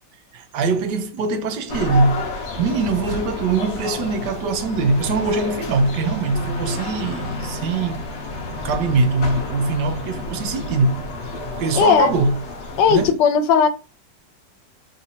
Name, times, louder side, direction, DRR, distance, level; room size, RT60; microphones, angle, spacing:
voice 1, 0.3-8.1 8.6-11.0 11.6-12.4 12.9-13.1, right 3 dB, 80° right, 1.2 m, -22 dB
sound 1, 1.7-13.1, left 2 dB, 55° left, 0.8 m, -31 dB
voice 2, 11.8-12.1 12.8-13.7, left 7 dB, 85° left, 1.2 m, -16 dB
3.7 x 2.7 x 2.8 m
omnidirectional pair, 1.8 m